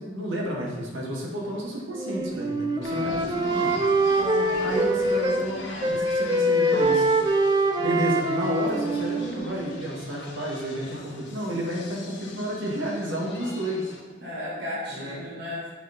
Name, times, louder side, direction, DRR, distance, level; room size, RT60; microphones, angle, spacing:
voice 1, 0.0-3.7 4.6-7.1 7.8-13.9 14.9-15.2, equal, 80° right, -3 dB, 2.1 m, -31 dB
Wind instrument woodwind instrument, 1.9-5.5 5.8-9.8, right 1 dB, 20° right, 0.5 m, -24 dB
sound 1, 2.8-14.0, left 2 dB, 65° left, 1.4 m, -42 dB
voice 2, 4.2-4.7 14.2-15.7, left 1 dB, 55° right, -9 dB, 2.6 m, -35 dB
7.4 x 5.8 x 5.3 m, 1.4 s
head